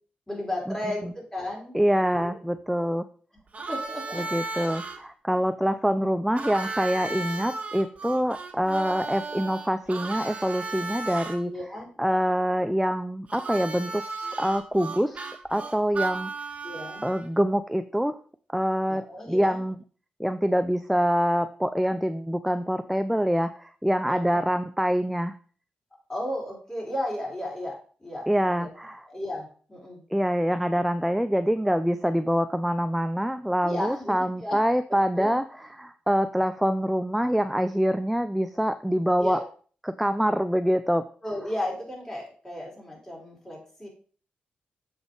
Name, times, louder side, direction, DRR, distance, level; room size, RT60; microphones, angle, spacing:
voice 1, 0.3-2.3 3.7-4.2 5.3-6.1 11.5-11.9 16.6-17.0 18.9-19.6 24.1-24.4 26.1-28.7 29.1-30.0 33.6-34.6 35.2-35.4 39.2-39.5 41.2-43.9, left 1 dB, 20° left, -3 dB, 4.0 m, -34 dB
voice 2, 1.7-3.1 4.2-11.5 12.0-14.0 14.4-16.3 17.0-18.1 18.5-19.8 20.2-25.4 28.3-29.0 30.1-35.4 35.8-39.4 39.8-41.1, equal, ahead, 10 dB, 0.4 m, -25 dB
Harmonica, 3.5-5.0 6.4-11.4 13.3-17.2, right 3 dB, 40° right, 1.5 m, -35 dB
7.1 x 5.5 x 3.9 m, 0.43 s
cardioid pair, 75°, 3 cm